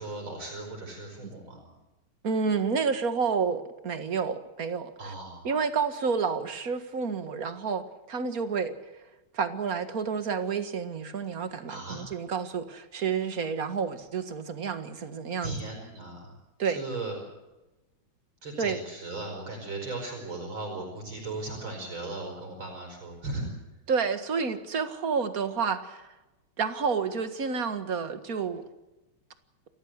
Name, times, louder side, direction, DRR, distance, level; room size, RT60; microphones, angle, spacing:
voice 1, 0.0-1.7 5.0-5.5 11.7-12.1 15.4-16.3 16.6-17.2 18.4-23.5, right 2 dB, 65° right, 2 dB, 6.1 m, -37 dB
voice 2, 2.2-5.1 5.4-8.7 9.3-15.6 16.6-16.8 18.6-18.8 23.9-26.1 26.6-28.6, right 5 dB, 45° right, 10 dB, 2.1 m, -29 dB
28.0 x 15.0 x 8.1 m, 1.0 s
omnidirectional pair, 2.3 m